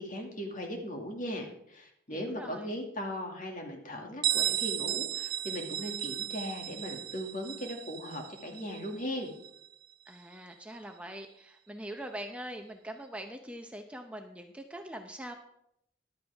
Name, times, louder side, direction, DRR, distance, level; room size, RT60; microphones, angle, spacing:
voice 1, 0.0-9.3, left 1 dB, 45° left, 2 dB, 2.2 m, -38 dB
voice 2, 2.1-2.8 10.1-15.3, right 1 dB, 5° right, 4 dB, 0.7 m, -43 dB
Bell, 4.2-9.7, right 12 dB, 50° right, 0.4 m, -34 dB
14.0 x 11.5 x 3.5 m, 0.77 s
head